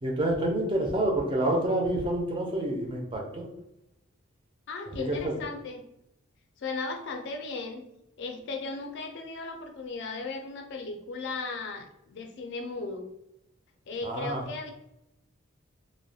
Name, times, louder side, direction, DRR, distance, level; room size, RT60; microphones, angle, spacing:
voice 1, 0.0-3.5 5.1-5.4 14.0-14.4, right 1 dB, 25° right, 0 dB, 0.4 m, -28 dB
voice 2, 4.7-5.8 6.6-7.8 8.2-13.1 13.9-14.7, left 3 dB, 55° left, 5 dB, 0.4 m, -36 dB
2.3 x 2.1 x 2.6 m, 0.84 s
head